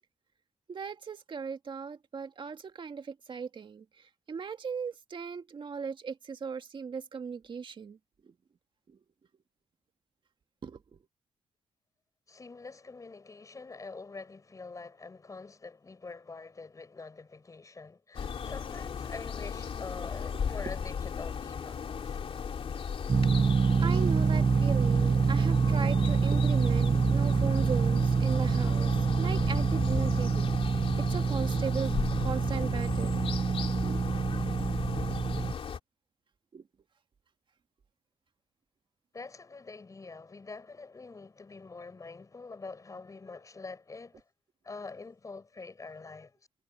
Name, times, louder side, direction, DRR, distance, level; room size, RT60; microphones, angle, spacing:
voice 1, 0.7-3.9 4.3-8.0 8.9-9.0 10.6-11.0 23.8-32.0 32.2-33.2 33.8-34.0 36.5-36.6, right 6 dB, 50° right, 1.9 m, -38 dB
voice 2, 12.3-22.2 39.1-44.2 44.6-46.4, left 4 dB, 30° left, 5.8 m, -45 dB
sound 1, 18.1-35.8, left 7 dB, 60° left, 3.0 m, -36 dB
sound 2, 23.1-35.5, right 5 dB, 30° right, 0.4 m, -26 dB
cardioid pair, 100°, 11 cm